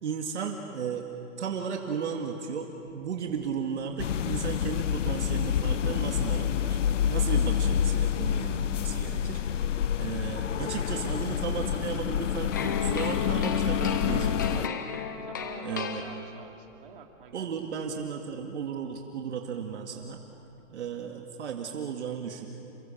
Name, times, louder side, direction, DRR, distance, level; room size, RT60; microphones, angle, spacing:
voice 1, 0.0-1.1 1.4-6.8 7.1-9.6 10.0-14.7 15.6-16.0 17.3-20.2 20.7-22.5, right 6 dB, 65° right, 3 dB, 2.2 m, -35 dB
Thunder, 2.8-20.9, right 2 dB, 30° right, 4.1 m, -54 dB
sound 1, 4.0-14.7, left 9 dB, 70° left, 0.8 m, -28 dB
sound 2, 12.5-16.6, left 5 dB, 15° left, 0.5 m, -34 dB
voice 2, 15.3-17.9 20.6-20.7, right 7 dB, 45° right, 2 dB, 2.8 m, -49 dB
29.0 x 25.5 x 7.3 m, 2.9 s
hypercardioid pair, 170°, 38 cm